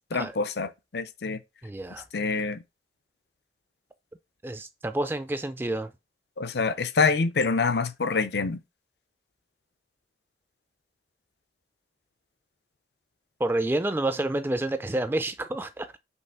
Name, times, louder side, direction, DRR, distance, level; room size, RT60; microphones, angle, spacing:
voice 1, 0.1-1.4 2.1-2.6 6.4-8.6, left 4 dB, 70° left, 0.5 m, -26 dB
voice 2, 1.6-2.1 4.4-5.9 13.4-16.0, right 1 dB, 10° right, 0.3 m, -29 dB
5.4 x 3.3 x 5.5 m
head